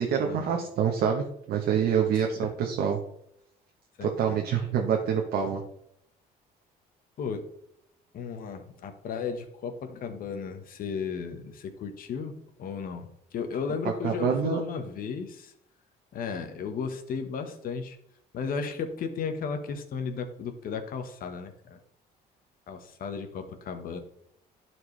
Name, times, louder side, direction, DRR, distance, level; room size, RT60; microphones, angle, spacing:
voice 1, 0.0-3.0 4.0-5.6 14.0-14.6, right 7 dB, 70° right, 1 dB, 1.1 m, -26 dB
voice 2, 2.2-2.5 4.0-4.4 7.2-7.5 8.1-15.5 16.1-18.0 18.3-21.8 22.7-24.0, left 5 dB, 60° left, 6 dB, 1.2 m, -35 dB
11.5 x 4.6 x 3.3 m, 0.73 s
cardioid pair, 110°, 17 cm